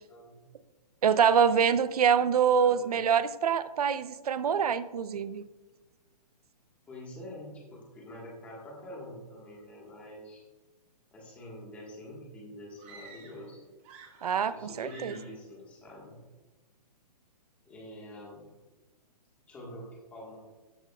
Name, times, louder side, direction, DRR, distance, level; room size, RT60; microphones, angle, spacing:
voice 1, 0.1-0.4 2.5-3.0 6.9-10.4 11.1-13.6 14.5-16.2 17.6-18.5 19.5-20.4, left 1 dB, 5° left, -3 dB, 1.5 m, -46 dB
voice 2, 1.0-5.4 14.2-15.2, right 7 dB, 65° right, 15 dB, 0.7 m, -25 dB
sound 1, 12.8-13.5 13.8-14.6 14.8-15.4, right 5 dB, 20° right, 1.1 m, -51 dB
13.0 x 10.5 x 2.3 m, 1.2 s
hypercardioid pair, 175°, 21 cm